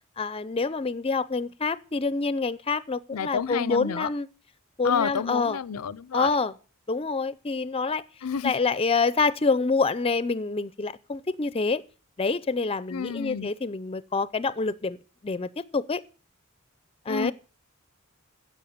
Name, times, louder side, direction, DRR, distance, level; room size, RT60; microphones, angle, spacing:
voice 1, 0.2-4.3 4.8-5.6 6.1-6.5 6.9-8.0 8.4-11.8 12.2-15.0 15.2-16.0 17.1-17.3, left 4 dB, 25° left, 0.5 m, -27 dB
voice 2, 3.1-4.1 4.8-6.3 8.2-8.5 12.9-13.5 17.1-17.3, left 7 dB, 90° left, 0.6 m, -29 dB
10.5 x 7.3 x 8.6 m
head